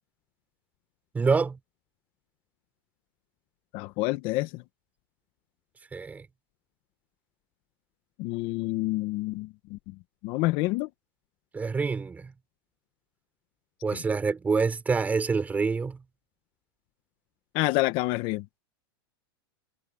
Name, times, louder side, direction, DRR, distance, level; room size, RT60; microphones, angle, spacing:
voice 1, 1.1-1.6 5.9-6.3 11.5-12.3 13.8-16.0, right 4 dB, 10° right, 5.2 m, -26 dB
voice 2, 3.7-4.5 8.2-9.8 10.2-10.9 17.5-18.4, left 20 dB, 40° left, 1.0 m, -28 dB
supercardioid pair, 150°, 13 cm